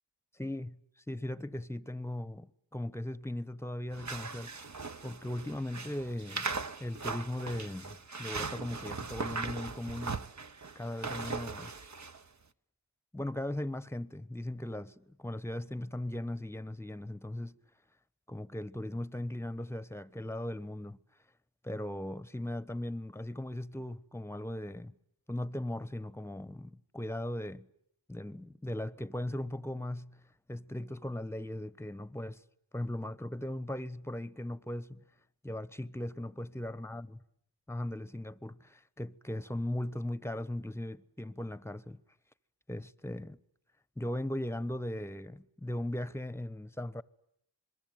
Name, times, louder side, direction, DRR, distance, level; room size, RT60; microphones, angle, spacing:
voice 1, 0.3-0.8 1.1-4.5 5.0-6.5 6.8-10.3 10.7-11.8 13.1-17.6 18.3-21.0 21.6-25.0 25.3-27.7 28.1-30.2 30.5-32.4 32.7-35.0 35.4-37.2 37.7-42.0 42.7-43.4 44.0-47.0, left 1 dB, 5° left, 1.1 m, -38 dB
sound 1, 3.9-12.2, right 4 dB, 40° right, 1.1 m, -39 dB
26.5 x 22.5 x 9.4 m
cardioid pair, 40°, 43 cm